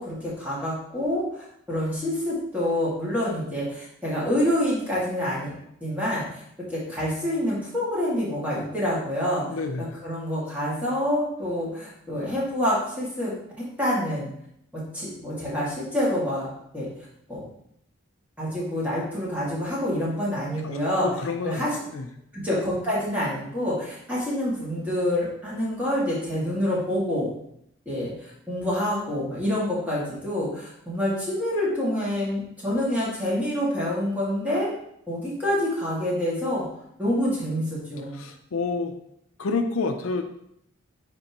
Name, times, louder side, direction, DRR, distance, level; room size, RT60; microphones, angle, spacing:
voice 1, 0.0-5.5 5.8-9.5 9.8-13.3 13.8-14.3 14.7-16.9 17.3-17.4 18.4-21.1 21.4-21.7 22.3-27.3 27.9-34.7 35.1-36.7 37.0-38.2, left 1 dB, 5° right, -7 dB, 2.0 m, -27 dB
voice 2, 9.5-10.0 20.6-22.1 38.1-38.9 39.4-40.2, left 4 dB, 75° left, 6 dB, 0.5 m, -29 dB
9.3 x 3.8 x 2.9 m, 0.74 s
head